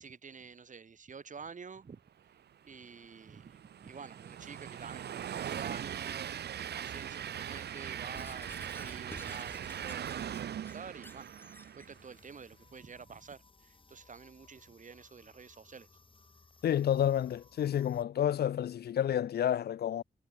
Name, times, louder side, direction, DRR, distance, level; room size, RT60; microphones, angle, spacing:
voice 1, 0.0-2.0 2.6-11.3 11.8-15.9, right 5 dB, 50° right, 2.6 m, -49 dB
Train, 2.7-12.2, right 9 dB, 85° right, 0.7 m, -41 dB
Squeak / Writing, 8.1-11.9, left 1 dB, 10° left, 2.7 m, -52 dB
sound 1, 11.7-18.0, left 3 dB, 30° left, 2.6 m, -62 dB
voice 2, 16.6-20.0, left 10 dB, 75° left, 0.4 m, -30 dB
wide cardioid pair, 120°, 17 cm